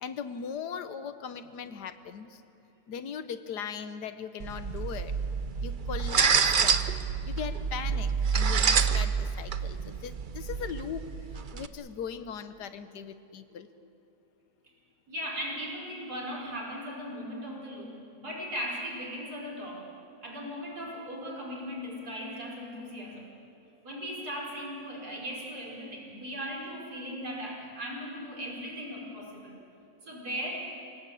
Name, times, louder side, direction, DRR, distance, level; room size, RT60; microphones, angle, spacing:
voice 1, 0.0-2.4 2.9-5.2 5.6-7.0 7.3-11.1 11.5-13.9, left 7 dB, 90° left, 11 dB, 1.6 m, -39 dB
sound 1, 4.4-11.7, right 6 dB, 45° right, 0.7 m, -28 dB
voice 2, 15.1-19.8 20.2-23.3 23.8-29.5 30.0-30.7, equal, 75° right, -2 dB, 5.6 m, -38 dB
28.0 x 18.0 x 8.5 m, 2.7 s
omnidirectional pair, 1.7 m